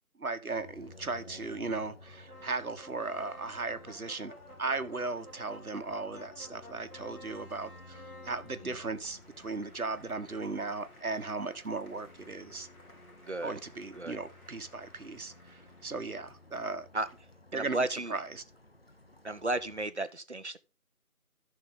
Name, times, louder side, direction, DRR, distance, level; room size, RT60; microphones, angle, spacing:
voice 1, 0.2-4.3 4.6-12.7 13.4-16.9 17.5-18.4, right 3 dB, 70° right, 1.5 m, -37 dB
sound 1, 0.5-19.9, left 2 dB, 40° left, 1.3 m, -55 dB
sound 2, 2.3-16.4, left 1 dB, 70° left, 5.1 m, -54 dB
voice 2, 13.3-13.6 13.9-14.2 16.9-17.1 17.5-18.1 19.2-20.6, right 2 dB, 50° right, 1.0 m, -33 dB
14.5 x 6.1 x 3.8 m
figure-of-eight pair, 175°, 45 cm